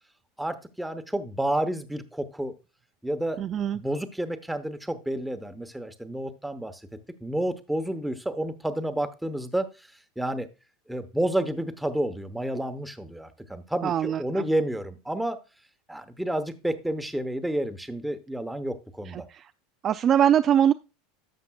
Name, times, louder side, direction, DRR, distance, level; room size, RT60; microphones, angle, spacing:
voice 1, 0.4-2.5 3.0-3.4 3.7-6.8 7.2-9.7 10.2-10.5 10.9-15.4 15.9-19.2, right 1 dB, 5° right, 0.9 m, -30 dB
voice 2, 3.4-3.8 13.8-14.5 19.1-19.5 19.8-20.7, right 9 dB, 30° right, 0.3 m, -23 dB
12.0 x 7.3 x 2.3 m
supercardioid pair, 135°, 0 cm